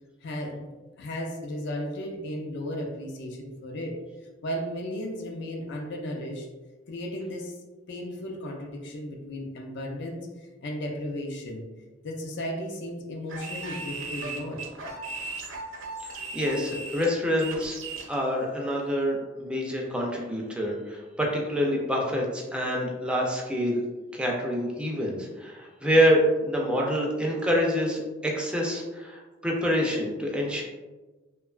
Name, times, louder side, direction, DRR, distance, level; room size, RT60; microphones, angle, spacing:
voice 1, 0.2-0.7 1.0-4.0 4.4-6.5 6.9-7.6 7.9-10.3 10.6-11.6 12.0-14.7, equal, 60° left, 3 dB, 0.4 m, -35 dB
sound 1, 13.3-18.1, right 3 dB, 70° right, 0.6 m, -37 dB
voice 2, 16.0-17.8 18.1-23.8 24.1-30.6, equal, 5° right, -2 dB, 0.4 m, -26 dB
2.7 x 2.2 x 2.3 m, 1.2 s
head